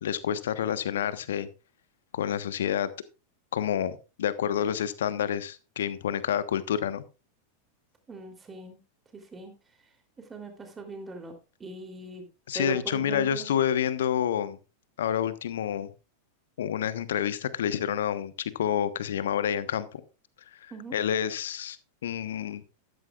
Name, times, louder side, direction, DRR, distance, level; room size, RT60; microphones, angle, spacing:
voice 1, 0.0-1.5 2.1-2.9 3.5-7.0 12.5-14.6 15.0-15.9 16.6-20.0 20.6-21.8 22.0-22.6, left 9 dB, 60° left, 14 dB, 1.2 m, -28 dB
voice 2, 8.1-8.8 9.1-9.5 10.2-11.3 11.6-12.2 12.5-13.5 20.7-21.0, right 3 dB, 15° right, 5 dB, 3.3 m, -40 dB
13.5 x 13.0 x 2.4 m, 0.30 s
figure-of-eight pair, 90°, 0 cm